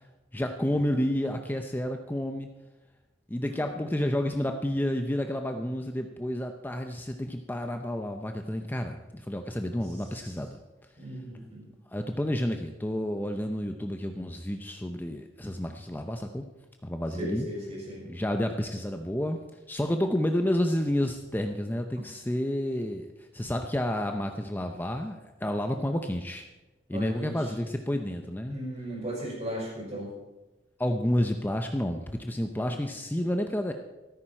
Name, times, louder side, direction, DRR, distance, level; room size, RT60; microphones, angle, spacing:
voice 1, 0.3-2.5 3.3-10.6 11.9-16.5 16.8-17.5 18.1-23.1 23.3-26.4 26.9-28.6 30.8-33.7, left 1 dB, 10° left, 5 dB, 0.7 m, -30 dB
voice 2, 3.5-4.0 10.1-10.3 11.0-11.7 17.2-18.0 26.9-27.3 28.5-30.1 32.5-32.6, right 1 dB, 35° right, -2 dB, 5.7 m, -37 dB
14.0 x 13.5 x 4.5 m, 1.1 s
head